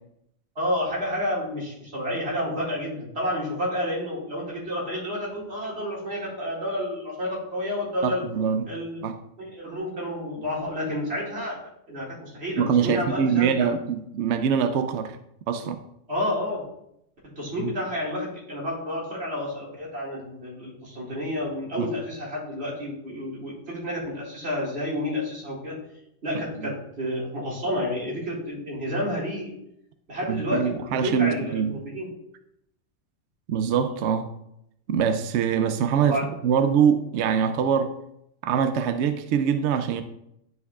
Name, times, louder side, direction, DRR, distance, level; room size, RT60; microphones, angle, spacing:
voice 1, 0.6-8.2 8.7-9.0 9.4-11.6 11.9-13.7 16.1-16.7 17.4-25.8 26.2-29.5 30.1-32.1 36.0-36.3, left 1 dB, 50° right, 2.4 m, -30 dB
voice 2, 8.0-8.7 9.0-9.2 12.6-15.2 15.5-15.8 17.6-17.7 21.8-21.9 26.6-26.7 30.3-31.8 33.5-34.3 34.9-36.2 36.4-37.9 38.4-40.0, right 7 dB, 65° right, 0.8 m, -24 dB
11.0 x 4.7 x 2.4 m
omnidirectional pair, 1.4 m